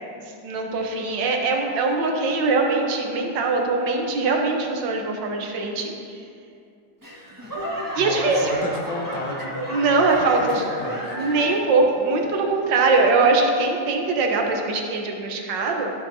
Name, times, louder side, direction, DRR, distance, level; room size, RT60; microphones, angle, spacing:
voice 1, 0.4-6.2 7.9-8.5 9.7-10.6 11.1-15.9, right 3 dB, 80° right, 2 dB, 1.5 m, -22 dB
Laughter / Clapping / Crowd, 7.0-11.8 12.1-12.6 13.2-13.3, equal, 10° right, 1.2 m, -33 dB
voice 2, 8.0-11.2, left 2 dB, 85° left, 2 dB, 1.6 m, -33 dB
11.5 x 7.0 x 2.7 m, 2.4 s
omnidirectional pair, 2.0 m